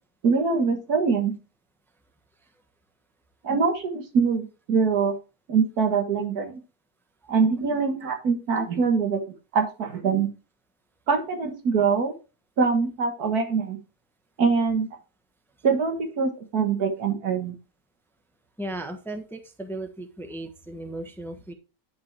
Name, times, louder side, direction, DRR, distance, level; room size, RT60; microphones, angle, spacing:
voice 1, 0.2-1.3 3.4-5.2 5.5-6.5 7.3-9.2 9.5-10.3 11.1-12.1 12.6-13.8 14.4-14.9 15.6-17.6, right 5 dB, 85° right, 5 dB, 2.1 m, -23 dB
voice 2, 18.6-21.5, right 1 dB, ahead, 6 dB, 0.9 m, -36 dB
10.0 x 5.6 x 3.3 m, 0.32 s
omnidirectional pair, 1.6 m